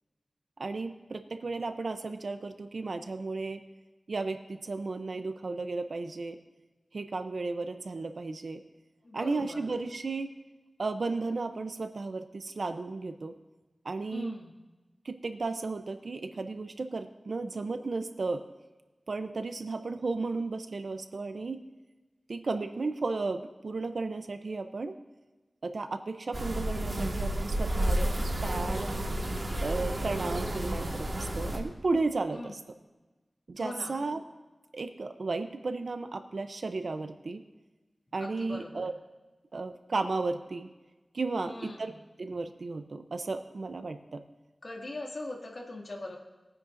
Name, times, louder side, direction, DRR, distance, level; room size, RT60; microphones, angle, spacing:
voice 1, 0.6-3.6 4.1-6.4 6.9-8.6 9.1-10.3 10.8-13.3 13.8-14.4 15.0-18.4 19.1-21.6 22.3-25.0 25.6-28.9 29.6-32.6 33.5-34.2 34.7-37.4 38.1-38.9 39.5-40.7 41.1-41.9 42.2-44.2, right 3 dB, 80° right, 8 dB, 0.7 m, -34 dB
voice 2, 9.0-9.6 14.1-14.6 30.0-30.3 32.3-32.6 33.6-34.0 38.2-38.8 41.4-42.0 44.6-46.2, left 2 dB, 70° left, -1 dB, 2.3 m, -41 dB
sound 1, 26.3-31.6, right 1 dB, 50° right, 1.8 m, -31 dB
21.0 x 9.8 x 2.6 m, 1.2 s
wide cardioid pair, 60°, 0 cm